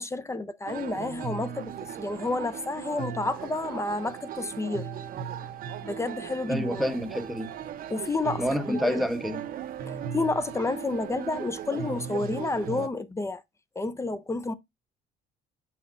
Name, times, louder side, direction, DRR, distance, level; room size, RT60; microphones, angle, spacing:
voice 1, 0.0-4.9 5.8-6.9 7.9-9.0 9.9-13.4 13.8-14.5, left 3 dB, 15° left, 0.6 m, -30 dB
sound 1, 0.7-12.9, right 8 dB, 60° right, 0.8 m, -37 dB
voice 2, 6.4-7.5 8.4-9.5, equal, ahead, 0.9 m, -28 dB
7.7 x 5.6 x 2.5 m
cardioid pair, 110°, 17 cm